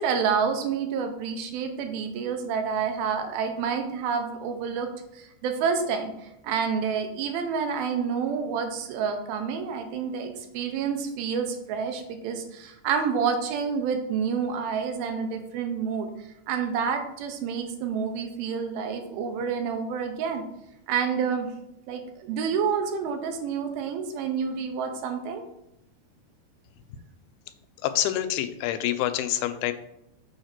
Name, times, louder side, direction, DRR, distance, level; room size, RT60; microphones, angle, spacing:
voice 1, 0.0-20.4 20.9-21.5 21.9-25.4, right 6 dB, 80° right, 6 dB, 2.5 m, -29 dB
voice 2, 27.8-29.7, left 12 dB, 80° left, 10 dB, 2.3 m, -26 dB
7.1 x 3.2 x 5.8 m, 0.83 s
omnidirectional pair, 4.4 m